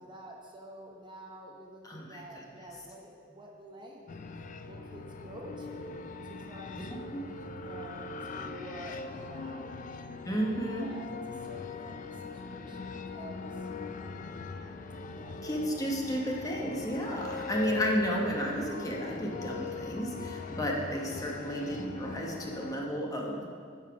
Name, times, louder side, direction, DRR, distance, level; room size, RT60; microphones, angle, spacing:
voice 1, 0.0-4.1 4.7-6.0 6.2-9.7 10.6-13.7 15.1-15.9, right 1 dB, 25° right, 0 dB, 0.8 m, -49 dB
voice 2, 1.8-2.4 6.7-6.8 7.1-7.2 10.2-10.9 15.4-23.5, equal, 20° left, -1 dB, 1.0 m, -33 dB
sound 1, 4.1-22.7, left 4 dB, 45° left, 0.4 m, -41 dB
9.7 x 5.6 x 4.8 m, 2.1 s
head